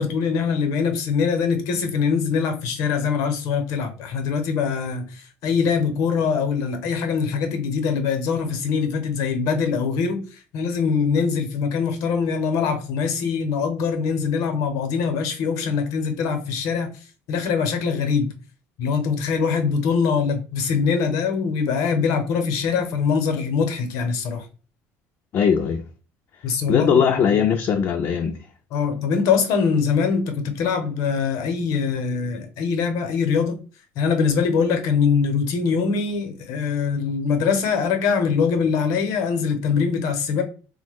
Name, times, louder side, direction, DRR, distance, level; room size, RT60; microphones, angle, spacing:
voice 1, 0.0-10.2 10.5-16.9 17.3-18.3 18.8-24.5 26.4-27.0 28.7-33.6 34.0-40.4, left 5 dB, 75° left, 0.8 m, -23 dB
voice 2, 25.3-25.8 26.7-28.4, left 7 dB, 45° left, 0.4 m, -20 dB
3.0 x 2.1 x 3.4 m
cardioid pair, 115°, 6 cm